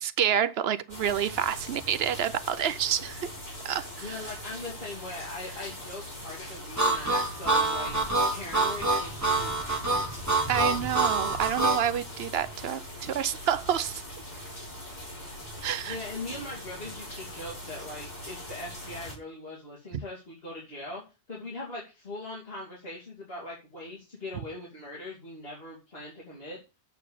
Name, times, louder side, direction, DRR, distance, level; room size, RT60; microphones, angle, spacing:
voice 1, 0.0-3.3 3.6-4.3 10.5-14.0 15.6-16.0 19.9-20.0, right 9 dB, 65° right, 0.8 m, -28 dB
sound 1, 0.9-19.2, equal, 40° left, 2.9 m, -41 dB
voice 2, 4.0-8.0 8.3-9.8 15.9-21.0 21.3-26.6, left 2 dB, 60° left, 3.0 m, -41 dB
Harmonica, 6.8-11.8, right 2 dB, 15° right, 1.5 m, -26 dB
7.9 x 4.8 x 7.1 m
omnidirectional pair, 1.2 m